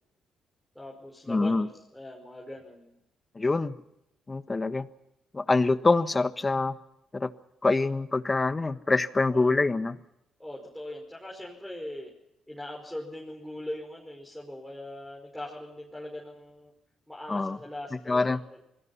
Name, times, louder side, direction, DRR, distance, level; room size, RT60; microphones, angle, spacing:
voice 1, 0.8-3.0 9.3-9.5 10.4-12.1 12.5-16.7 17.1-18.6, left 1 dB, 5° left, -3 dB, 5.3 m, -41 dB
voice 2, 1.3-1.7 3.3-3.7 4.3-4.9 5.3-6.7 7.1-7.3 7.6-10.0 17.3-17.6 18.1-18.4, left 3 dB, 25° left, 11 dB, 1.3 m, -25 dB
27.0 x 20.5 x 5.6 m, 0.83 s
cardioid pair, 90°, 0 cm